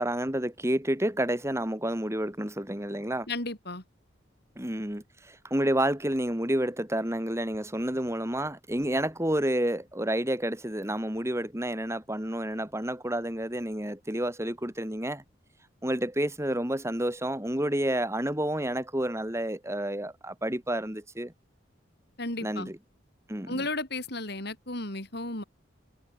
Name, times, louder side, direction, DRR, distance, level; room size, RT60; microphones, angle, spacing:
voice 1, 0.0-3.3 4.6-15.2 15.8-21.3 22.4-22.8 23.3-23.7, right 1 dB, 15° right, 3.6 m, -30 dB
voice 2, 3.3-3.8 22.2-22.7 23.5-25.4, left 2 dB, 55° left, 7.1 m, -34 dB
head